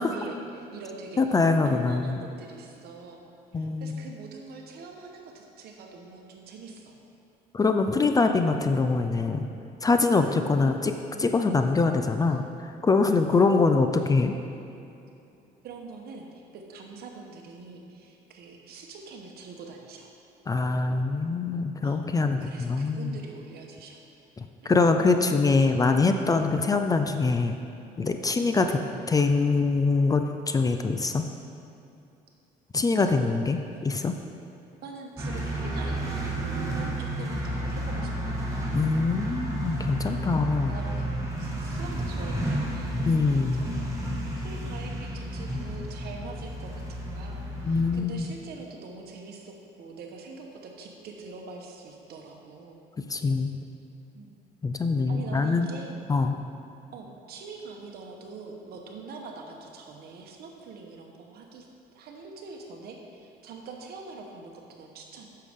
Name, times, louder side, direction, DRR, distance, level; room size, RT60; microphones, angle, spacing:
voice 1, 0.0-3.2 3.5-7.0 15.6-20.1 21.8-22.0 22.4-24.0 24.3-24.4 24.6-24.7 33.1-34.1 34.8-38.5 40.0-40.2 40.7-41.1 41.4-43.7 44.4-52.8 54.1-54.3 55.1-56.0 56.9-61.7 61.9-65.3, right 4 dB, 70° right, 2 dB, 1.1 m, -44 dB
voice 2, 1.2-2.2 3.5-4.1 7.5-9.5 9.8-10.9 11.2-12.4 12.8-14.3 20.5-23.2 24.4-27.6 28.0-28.8 29.1-31.3 32.7-34.1 38.7-40.8 43.1-43.7 47.6-48.3 53.0-53.5 54.6-55.7 56.1-56.4, left 3 dB, 20° left, 6 dB, 0.4 m, -24 dB
sound 1, 35.2-47.9, right 1 dB, 20° right, 1.5 m, -31 dB
9.1 x 6.6 x 3.6 m, 2.7 s
cardioid pair, 110°, 17 cm